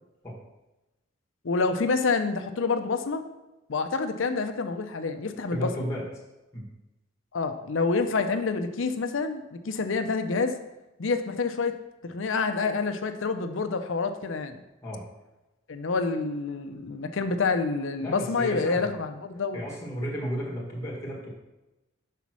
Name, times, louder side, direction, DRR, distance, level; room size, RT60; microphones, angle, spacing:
voice 1, 1.4-3.2 3.7-5.7 7.3-10.6 11.0-11.7 12.0-14.6 15.7-19.6, left 4 dB, 75° left, 8 dB, 0.6 m, -27 dB
voice 2, 5.5-6.0 6.5-6.6 14.8-15.0 18.0-18.9 19.5-21.3, equal, 15° left, -4 dB, 1.8 m, -33 dB
5.7 x 4.1 x 6.1 m, 1.0 s
head